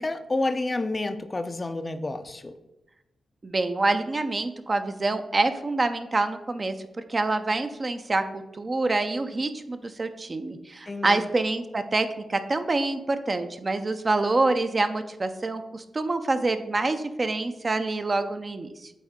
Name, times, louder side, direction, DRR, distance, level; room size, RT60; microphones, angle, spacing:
voice 1, 0.0-2.5 10.9-11.3, left 2 dB, 30° left, 9 dB, 0.4 m, -29 dB
voice 2, 3.4-18.9, right 2 dB, 40° right, 8 dB, 0.5 m, -26 dB
8.4 x 3.5 x 3.6 m, 0.96 s
cardioid pair, 65°, 0 cm